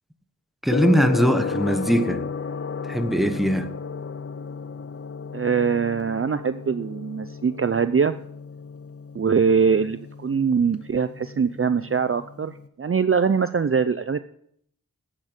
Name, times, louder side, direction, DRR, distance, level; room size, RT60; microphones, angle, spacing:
voice 1, 0.6-2.3 2.9-3.7, equal, ahead, 1.2 m, -21 dB
Gong, 0.7-12.7, left 5 dB, 40° left, 0.6 m, -34 dB
voice 2, 5.3-8.2 9.1-14.2, right 6 dB, 40° right, 0.5 m, -22 dB
8.7 x 8.7 x 8.1 m
wide cardioid pair, 45°, 35 cm